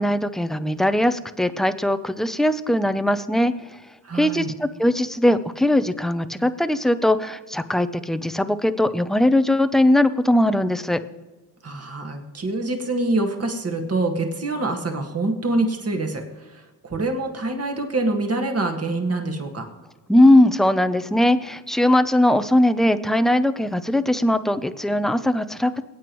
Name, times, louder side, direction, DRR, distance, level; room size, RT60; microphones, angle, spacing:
voice 1, 0.0-3.5 4.1-11.0 20.1-25.8, left 1 dB, ahead, 11 dB, 0.6 m, -20 dB
voice 2, 4.0-4.5 11.6-19.6, right 2 dB, 35° right, 3 dB, 1.9 m, -25 dB
22.5 x 8.8 x 3.1 m, 1.2 s
cardioid pair, 80°, 42 cm